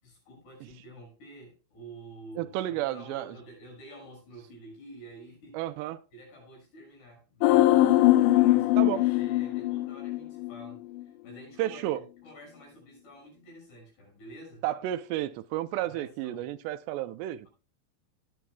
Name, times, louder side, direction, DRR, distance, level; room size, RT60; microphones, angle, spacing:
voice 1, 0.0-5.6 6.1-14.7 15.8-16.5, right 1 dB, 70° left, 8.3 m, -49 dB
voice 2, 2.4-3.4 5.5-6.0 8.8-9.1 11.6-12.0 14.6-17.5, right 14 dB, 85° right, 2.7 m, -32 dB
sound 1, 7.4-10.7 11.0-11.1, left 16 dB, 90° left, 2.8 m, -22 dB
19.5 x 8.8 x 2.3 m
omnidirectional pair, 4.9 m